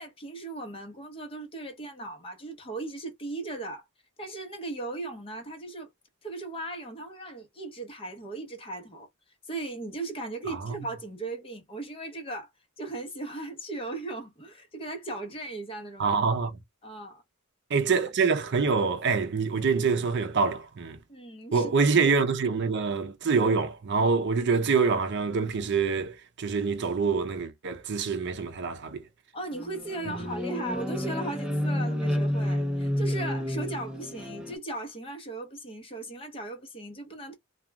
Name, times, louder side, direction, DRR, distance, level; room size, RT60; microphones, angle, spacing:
voice 1, 0.0-3.8 4.2-5.9 6.2-9.1 9.5-12.5 12.8-16.2 16.8-17.2 21.1-21.9 29.3-37.3, right 2 dB, 25° left, 0.9 m, -37 dB
voice 2, 16.0-16.6 17.7-21.0 21.5-29.0, right 5 dB, 55° right, 0.5 m, -25 dB
sound 1, 29.5-34.6, left 1 dB, 5° right, 0.5 m, -30 dB
2.3 x 2.3 x 3.1 m
head